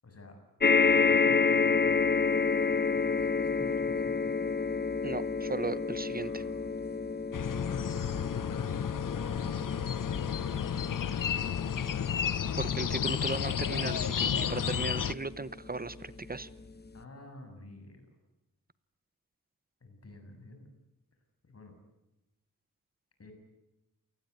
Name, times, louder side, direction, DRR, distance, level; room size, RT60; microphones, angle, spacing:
voice 1, 0.0-0.4 0.9-4.5 6.2-6.5 7.9-8.7 16.9-18.0 19.8-20.7 21.4-21.7 23.2-23.3, left 2 dB, 45° left, 5 dB, 7.3 m, -51 dB
sound 1, 0.6-15.2 15.9-16.0 16.3-16.4, left 5 dB, 30° left, 1.1 m, -30 dB
voice 2, 5.0-6.4 12.5-16.5, right 3 dB, 25° right, 16 dB, 0.9 m, -37 dB
sound 2, 7.3-15.1, left 8 dB, 65° left, 0.9 m, -32 dB
28.5 x 19.5 x 9.5 m, 0.95 s
wide cardioid pair, 150°, 34 cm